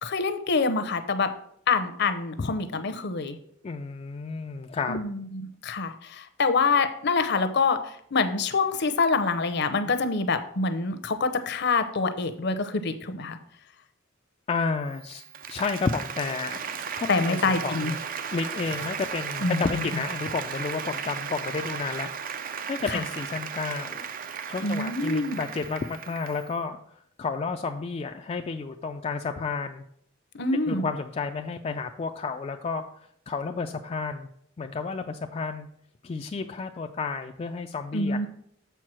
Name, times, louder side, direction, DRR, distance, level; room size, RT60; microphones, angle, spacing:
voice 1, 0.0-1.3 1.7-3.4 4.9-13.4 17.1-18.0 19.4-19.8 22.9-23.0 24.6-25.4 30.3-30.8 37.9-38.3, left 4 dB, 60° left, 10 dB, 0.7 m, -26 dB
voice 2, 3.6-5.0 14.5-15.2 15.5-18.0 18.3-22.1 22.7-24.0 24.5-26.8 27.2-29.8 30.7-32.8 33.3-34.3 34.6-35.7 36.0-38.2, left 4 dB, 30° left, 4 dB, 0.3 m, -31 dB
Applause, 14.9-26.5, right 7 dB, 45° right, 0.5 m, -35 dB
6.9 x 4.5 x 6.1 m, 0.68 s
head